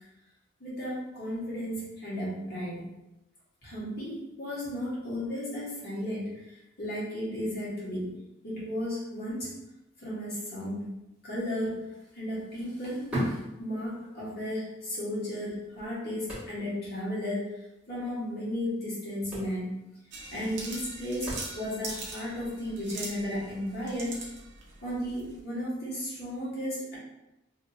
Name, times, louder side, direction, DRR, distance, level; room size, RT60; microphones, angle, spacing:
voice 1, 0.6-2.9 3.6-6.3 6.8-8.2 8.4-9.5 10.0-10.9 11.2-11.8 12.1-17.5 17.9-19.9 20.3-24.1 24.8-27.0, equal, 55° left, -7 dB, 1.4 m, -34 dB
sound 1, 11.3-11.5 11.7-14.4 14.7-14.8 15.4-16.9 17.2-17.3 17.6-17.8 18.7-18.8 19.1-21.9 22.5-22.6, equal, 5° right, 1.4 m, -37 dB
sound 2, 20.1-25.4, right 3 dB, 65° right, 0.7 m, -42 dB
2.9 x 2.8 x 2.7 m, 0.92 s
head